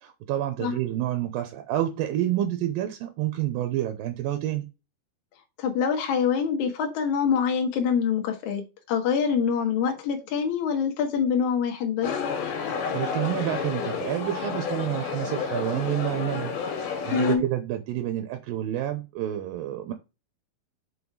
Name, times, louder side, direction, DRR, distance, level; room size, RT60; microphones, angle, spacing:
voice 1, 0.0-4.7 12.9-19.9, right 13 dB, 80° right, 2.5 m, -29 dB
voice 2, 5.6-8.6 8.9-12.1 17.1-17.4, left 6 dB, 60° left, 2.6 m, -25 dB
sound 1, 12.0-17.4, left 6 dB, 85° left, 3.7 m, -30 dB
7.1 x 4.4 x 4.7 m
omnidirectional pair, 4.3 m